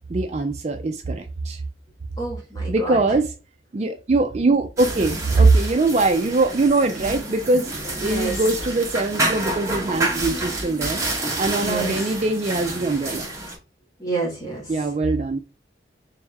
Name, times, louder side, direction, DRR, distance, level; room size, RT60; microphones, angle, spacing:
voice 1, 0.1-1.6 2.7-3.3 3.7-7.7 8.0-11.0 11.4-13.2 14.7-15.4, right 3 dB, 35° right, 0.4 m, -21 dB
voice 2, 2.2-3.0 8.0-8.4 11.6-12.0 14.0-14.7, right 3 dB, 20° left, 1.4 m, -29 dB
sound 1, 4.8-13.6, right 2 dB, 15° right, 0.9 m, -28 dB
3.5 x 3.3 x 3.3 m
head